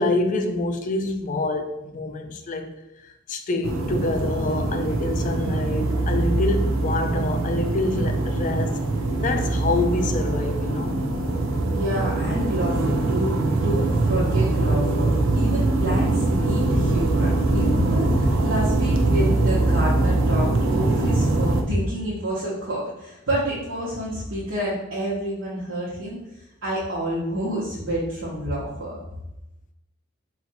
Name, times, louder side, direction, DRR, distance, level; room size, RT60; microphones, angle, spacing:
voice 1, 0.0-8.8 9.2-11.1, left 2 dB, 40° left, 0.4 m, -26 dB
sound 1, 3.6-21.6, right 2 dB, 85° right, 0.6 m, -22 dB
voice 2, 11.7-26.2 26.6-29.0, equal, 70° right, 1.1 m, -28 dB
4.2 x 2.5 x 4.1 m
head